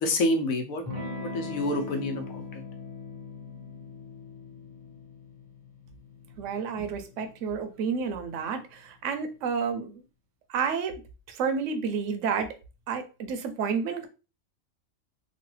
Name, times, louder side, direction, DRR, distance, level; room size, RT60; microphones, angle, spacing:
voice 1, 0.0-0.8 1.2-2.4 6.8-6.9, left 1 dB, 90° left, 1.1 m, -28 dB
Electric guitar / Strum, 0.8-9.1, left 3 dB, 15° left, 1.0 m, -42 dB
voice 2, 6.4-10.0 10.5-11.0 11.3-12.5 12.9-14.1, right 6 dB, 70° right, 0.9 m, -30 dB
3.0 x 2.2 x 3.1 m
omnidirectional pair, 1.4 m